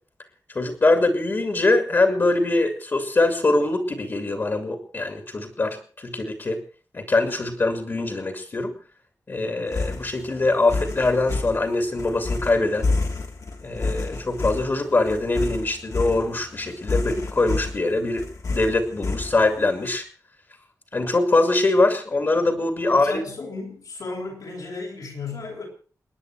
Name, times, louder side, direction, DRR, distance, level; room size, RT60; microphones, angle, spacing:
voice 1, 0.5-6.6 6.9-8.7 9.3-12.9 13.6-18.2 18.5-20.0 20.9-23.2, left 2 dB, 40° left, 5 dB, 2.7 m, -23 dB
sound 1, 9.7-19.7, left 3 dB, 60° left, 2.7 m, -29 dB
voice 2, 22.9-25.7, left 3 dB, 75° left, 0 dB, 7.7 m, -34 dB
29.0 x 10.0 x 4.8 m, 0.41 s
wide cardioid pair, 145°, 6 cm